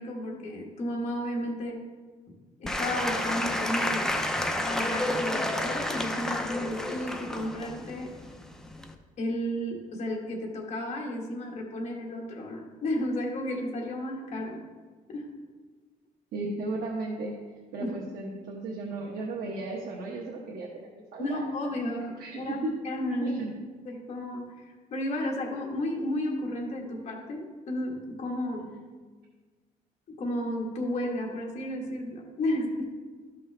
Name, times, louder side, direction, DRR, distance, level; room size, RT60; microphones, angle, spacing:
voice 1, 0.0-1.8 2.6-4.1 4.7-8.1 9.2-14.6 15.1-15.3 17.8-17.9 21.2-23.4 23.8-28.7 30.2-32.8, left 1 dB, 45° left, 0 dB, 1.5 m, -33 dB
Applause / Crowd, 2.6-8.9, left 1 dB, 5° left, 0.5 m, -30 dB
voice 2, 16.3-17.4 17.7-21.4 22.2-22.7 23.2-23.5, right 2 dB, 80° right, -3 dB, 1.1 m, -35 dB
12.5 x 5.4 x 3.3 m, 1.5 s
cardioid pair, 160°, 15 cm